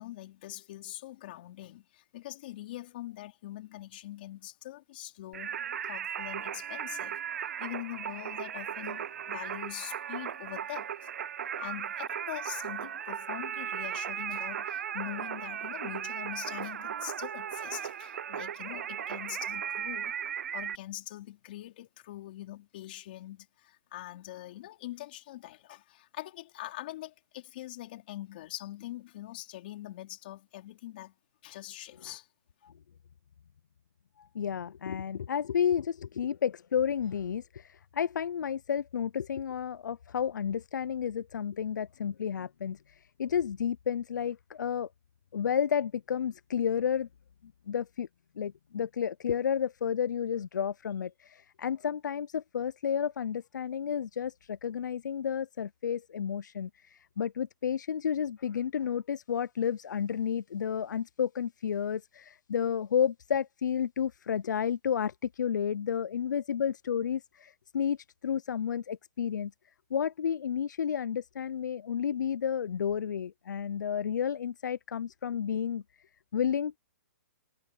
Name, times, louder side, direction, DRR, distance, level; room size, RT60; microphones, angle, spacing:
voice 1, 0.0-5.6 5.8-7.2 7.6-11.1 11.6-20.1 20.5-31.1 31.4-32.3, left 15 dB, 30° left, 4.4 m, -43 dB
Singing, 5.3-20.8, right 9 dB, 55° right, 0.5 m, -37 dB
voice 2, 34.2-44.9 45.3-47.1 47.7-48.1 48.4-68.0 68.2-69.5 69.9-75.8 76.3-76.8, left 8 dB, 80° left, 0.5 m, -31 dB
hypercardioid pair, 175°, 10 cm